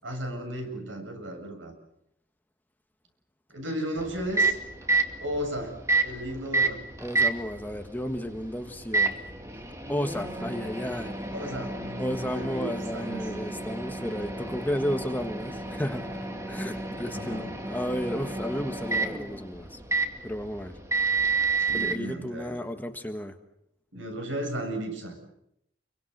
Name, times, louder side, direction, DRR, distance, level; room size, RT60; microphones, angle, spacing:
voice 1, 0.0-1.7 3.5-4.6 5.2-5.8 6.0-6.8 11.3-13.2 17.1-17.5 21.7-22.5 23.9-25.3, right 1 dB, 85° right, 5 dB, 7.8 m, -35 dB
Microwave oven, 4.0-22.0, right 3 dB, 15° right, 2.1 m, -30 dB
voice 2, 7.0-9.2 9.9-11.2 12.0-16.2 16.5-19.8 20.2-20.7 21.7-23.3, equal, 10° left, 6 dB, 1.5 m, -33 dB
29.0 x 23.5 x 6.7 m, 0.81 s
head